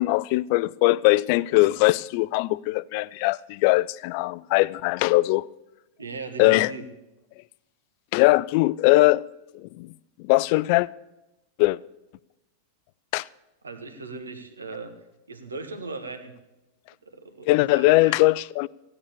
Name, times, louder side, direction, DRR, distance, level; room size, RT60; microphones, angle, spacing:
voice 1, 0.0-5.5 6.4-6.7 8.1-9.2 9.6-9.9 10.2-10.9 11.6-11.8 13.1-13.2 17.5-18.7, left 20 dB, 45° left, 0.4 m, -21 dB
voice 2, 6.0-6.8 13.6-14.9 15.3-16.3 17.0-18.2, right 4 dB, 75° right, 1.4 m, -38 dB
16.0 x 9.6 x 6.9 m
figure-of-eight pair, 90°, 0 cm